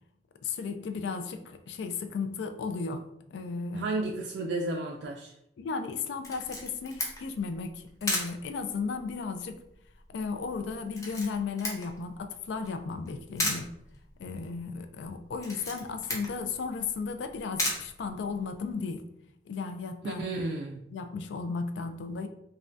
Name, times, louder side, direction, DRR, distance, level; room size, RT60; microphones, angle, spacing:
voice 1, 0.4-3.9 5.6-9.6 10.1-13.7 14.2-19.0 19.5-20.2 20.9-22.3, left 4 dB, 80° left, 8 dB, 0.3 m, -35 dB
voice 2, 3.7-5.3 20.0-20.8, right 2 dB, 70° right, 1 dB, 0.3 m, -32 dB
Camera, 6.2-18.7, left 1 dB, 20° left, 0.5 m, -38 dB
2.5 x 2.2 x 3.2 m, 0.78 s
head